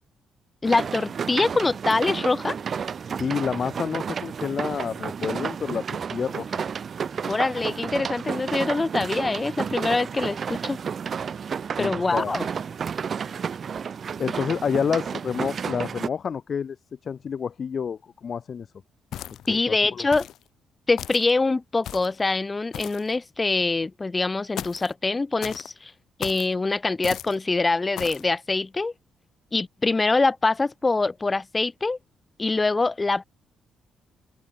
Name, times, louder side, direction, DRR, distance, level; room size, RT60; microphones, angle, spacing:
voice 1, 0.6-2.6 7.3-10.8 11.8-12.5 19.5-20.3 20.9-25.9 26.2-28.9 29.5-32.0 32.4-33.2, left 3 dB, 25° left, 2.4 m, -24 dB
sound 1, 0.6-16.1, right 6 dB, 50° right, 0.8 m, -31 dB
voice 2, 3.0-5.8 6.1-6.6 11.8-12.3 14.2-16.8 17.0-18.7 19.5-20.1, left 7 dB, 50° left, 1.2 m, -29 dB
sound 2, 19.1-19.6 20.1-20.4 21.0-21.3 21.8-22.2 22.7-23.1 24.6-24.9 25.4-25.7 26.2-26.5 27.0-27.4 28.0-28.3, left 11 dB, 75° left, 5.6 m, -36 dB
cardioid pair, 90°, 0 cm